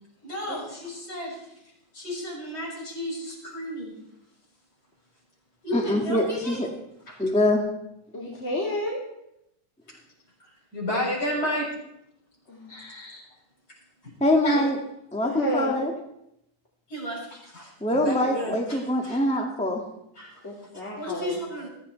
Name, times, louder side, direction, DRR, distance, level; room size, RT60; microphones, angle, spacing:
voice 1, 0.2-1.4 1.9-4.1 5.6-6.6 7.1-7.2 10.4-11.7 12.7-13.2 14.0-14.1 14.4-14.6 16.9-19.2 20.1-20.4 20.9-21.7, left 1 dB, 60° left, -4 dB, 7.8 m, -33 dB
voice 2, 5.7-6.7 7.2-7.6 14.2-14.8 15.1-15.9 17.8-19.8, left 1 dB, 5° left, 1 dB, 1.6 m, -23 dB
voice 3, 8.1-9.0 12.5-12.7 14.5-14.6 15.2-15.8 20.4-21.3, left 1 dB, 40° left, -4 dB, 2.9 m, -30 dB
18.5 x 15.0 x 4.5 m, 0.81 s
omnidirectional pair, 1.9 m